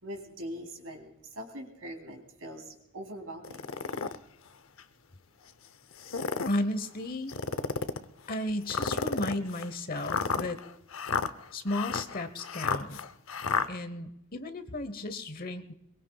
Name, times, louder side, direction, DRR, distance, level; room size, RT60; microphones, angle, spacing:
voice 1, 0.0-3.7, equal, 65° right, 3 dB, 3.5 m, -42 dB
sound 1, 3.4-4.2 4.8-4.9 5.9-6.6 7.3-8.0 8.7-13.7, left 5 dB, 60° left, 0.7 m, -32 dB
voice 2, 6.5-7.3 8.3-10.6 11.5-13.0 13.7-15.7, left 1 dB, 40° left, 11 dB, 1.0 m, -34 dB
23.0 x 22.0 x 2.3 m, 0.80 s
head